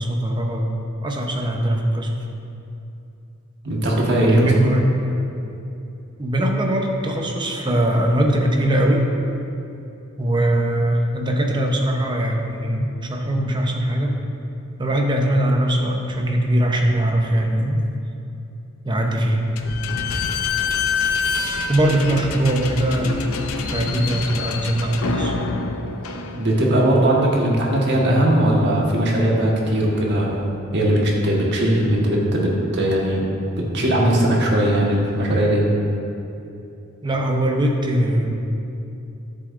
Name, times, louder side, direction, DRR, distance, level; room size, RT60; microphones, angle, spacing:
voice 1, 0.0-2.1 4.3-5.2 6.2-9.0 10.2-14.2 14.8-17.8 18.8-19.5 21.7-23.2 23.6-25.4 37.0-38.3, right 1 dB, 20° right, 2 dB, 0.7 m, -21 dB
voice 2, 3.6-4.5 26.3-33.2 33.6-35.6, right 1 dB, 55° right, -2 dB, 1.4 m, -19 dB
Slam / Squeak, 19.6-26.8, left 4 dB, 80° left, 0.6 m, -26 dB
10.5 x 7.9 x 2.5 m, 2.8 s
head